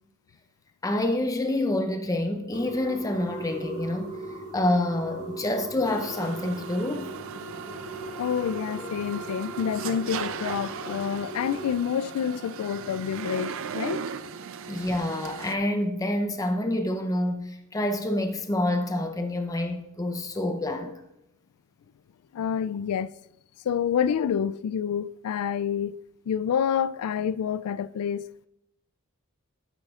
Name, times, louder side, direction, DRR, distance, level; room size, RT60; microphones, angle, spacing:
voice 1, 0.8-4.1 4.5-7.1 14.7-20.9, left 1 dB, 15° left, 0.6 m, -27 dB
sound 1, 2.5-11.7, right 2 dB, 50° right, 2.8 m, -39 dB
sound 2, 5.8-15.5, right 7 dB, 65° right, 0.5 m, -38 dB
voice 2, 8.2-14.1 22.3-23.1 23.6-26.0 26.3-28.5, left 8 dB, 85° left, 0.3 m, -28 dB
11.5 x 9.0 x 2.4 m
head